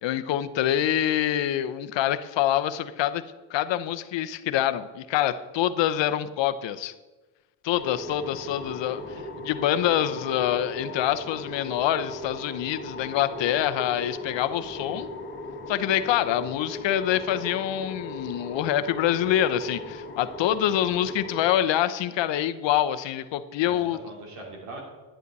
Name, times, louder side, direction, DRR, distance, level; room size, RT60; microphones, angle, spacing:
voice 1, 0.0-3.2 3.5-6.9 7.6-9.0 9.4-15.1 15.7-24.0, left 11 dB, 60° left, 11 dB, 0.9 m, -26 dB
sound 1, 7.7-21.5, left 2 dB, 25° left, 2.0 m, -38 dB
voice 2, 8.2-9.4 14.6-15.0 23.7-23.8 24.0-24.8, right 2 dB, 85° right, 0 dB, 3.8 m, -44 dB
11.0 x 10.0 x 4.1 m, 1.2 s
cardioid pair, 100°, 50 cm